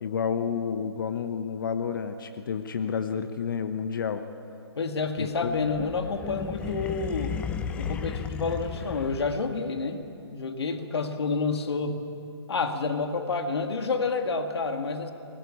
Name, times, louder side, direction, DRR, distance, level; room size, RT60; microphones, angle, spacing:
voice 1, 0.0-4.2 5.2-5.5, left 6 dB, 50° left, 9 dB, 1.0 m, -30 dB
voice 2, 4.8-7.4 7.8-12.1 12.5-15.1, left 4 dB, 70° left, 6 dB, 1.9 m, -29 dB
sound 1, 5.4-9.7, left 7 dB, 10° left, 0.5 m, -34 dB
23.0 x 20.0 x 8.6 m, 2.8 s
hypercardioid pair, 155°, 14 cm